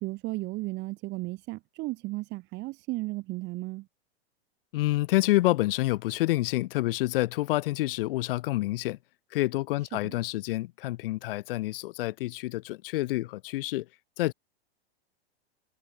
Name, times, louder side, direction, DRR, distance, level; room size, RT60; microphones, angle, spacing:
voice 1, 0.0-3.8 10.0-10.1, right 21 dB, 35° right, 1.2 m, -34 dB
voice 2, 4.7-9.0 9.3-13.9 14.2-14.3, left 17 dB, 60° left, 2.8 m, -28 dB
hypercardioid pair, 135°, 31 cm